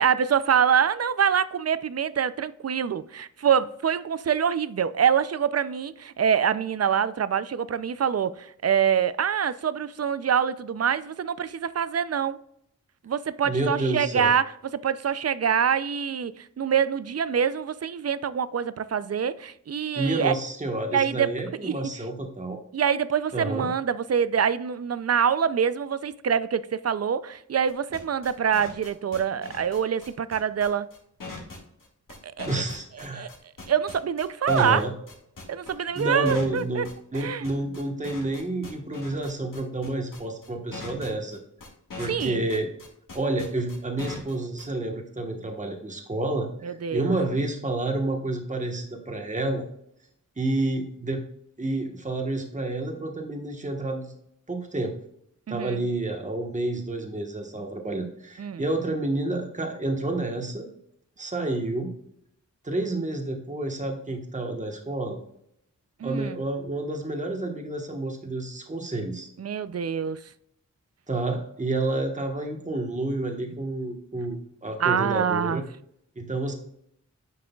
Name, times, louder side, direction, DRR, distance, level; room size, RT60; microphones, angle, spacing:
voice 1, 0.0-12.4 13.0-14.5 14.8-20.3 20.9-21.3 21.6-21.8 22.7-30.9 32.2-32.5 33.1-33.3 33.7-34.8 35.5-36.9 37.1-37.4 42.0-42.4 46.6-47.2 55.5-55.8 58.4-58.6 66.0-66.4 69.4-70.2 74.8-75.6, right 7 dB, 50° right, 0.4 m, -25 dB
voice 2, 13.4-14.3 19.9-22.6 23.3-23.7 32.5-33.3 34.5-34.9 35.9-41.4 42.0-42.7 43.1-49.6 50.4-51.2 51.6-54.1 54.5-54.9 55.5-60.7 61.2-61.9 62.6-65.2 66.0-69.3 71.1-75.6 76.2-76.5, right 2 dB, 25° right, 1.2 m, -29 dB
sound 1, 27.7-44.6, left 3 dB, 85° left, 2.1 m, -41 dB
9.5 x 6.1 x 2.3 m
wide cardioid pair, 85°, 31 cm